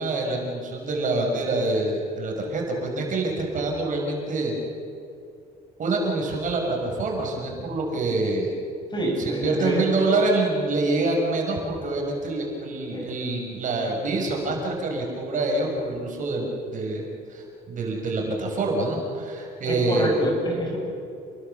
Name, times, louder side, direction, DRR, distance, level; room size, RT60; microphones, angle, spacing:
voice 1, 0.0-4.6 5.8-8.5 9.2-17.0 17.3-20.1, right 2 dB, 50° right, 0 dB, 6.1 m, -26 dB
voice 2, 8.9-9.9 12.9-13.1 19.7-20.8, right 1 dB, 25° left, 0 dB, 7.6 m, -26 dB
30.0 x 20.5 x 7.1 m, 2.6 s
cardioid pair, 110°, 17 cm